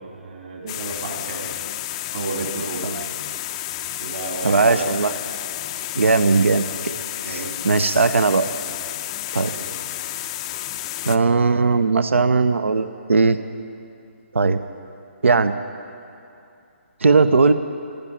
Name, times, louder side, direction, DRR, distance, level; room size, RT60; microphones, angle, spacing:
voice 1, 0.0-1.5 2.1-2.9 4.0-4.9 7.2-7.5 9.5-9.8, right 3 dB, 50° right, 1 dB, 2.7 m, -32 dB
sound 1, 0.7-11.2, left 13 dB, 25° left, 0.4 m, -31 dB
voice 2, 4.4-5.1 5.9-6.9 7.3-8.5 9.3-9.5 11.0-13.4 14.3-14.6 15.2-15.6 17.0-17.5, right 4 dB, 70° right, 12 dB, 0.6 m, -18 dB
12.0 x 10.5 x 9.7 m, 2.6 s
figure-of-eight pair, 140°, 7 cm